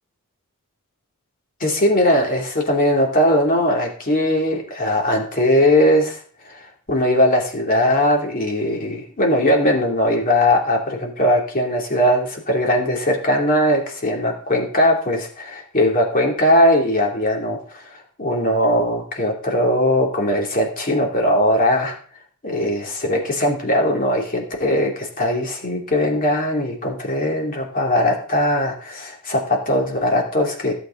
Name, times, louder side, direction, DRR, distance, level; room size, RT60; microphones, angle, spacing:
voice 1, 1.6-21.9 22.4-30.7, left 1 dB, 40° left, 0 dB, 2.7 m, -19 dB
15.5 x 8.0 x 3.8 m, 0.44 s
head